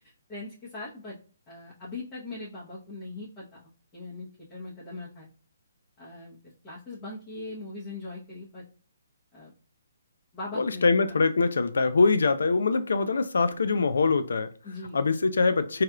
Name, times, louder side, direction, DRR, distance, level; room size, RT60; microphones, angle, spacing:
voice 1, 0.3-1.2 1.5-5.3 6.0-6.4 6.6-8.6 9.3-9.5 10.3-10.9 14.6-15.1, left 2 dB, 20° left, 1.1 m, -40 dB
voice 2, 10.5-14.5 14.9-15.8, left 4 dB, 80° left, 0.5 m, -23 dB
4.7 x 2.9 x 2.4 m
hypercardioid pair, 160°, 0 cm